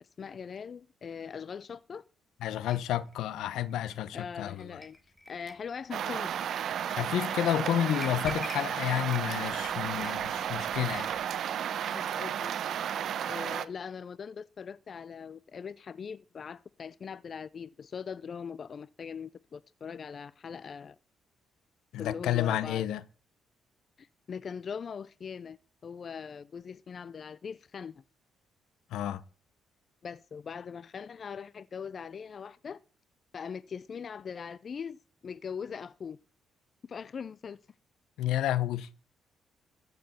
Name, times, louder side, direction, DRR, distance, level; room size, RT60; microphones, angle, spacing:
voice 1, 0.0-2.0 4.1-5.0 5.3-6.3 10.0-10.3 11.9-12.5 13.2-21.0 22.0-22.9 24.0-25.6 25.8-28.0 30.0-32.8 33.3-36.2 36.9-37.6, left 6 dB, 45° left, 0.5 m, -41 dB
voice 2, 2.4-4.8 6.9-11.1 21.9-23.0 28.9-29.2 38.2-38.9, left 12 dB, 85° left, 0.9 m, -30 dB
sound 1, 2.7-11.3, left 1 dB, 15° left, 2.7 m, -49 dB
sound 2, 5.9-13.7, right 9 dB, 65° right, 0.8 m, -33 dB
14.0 x 6.7 x 7.0 m
cardioid pair, 90°, 0 cm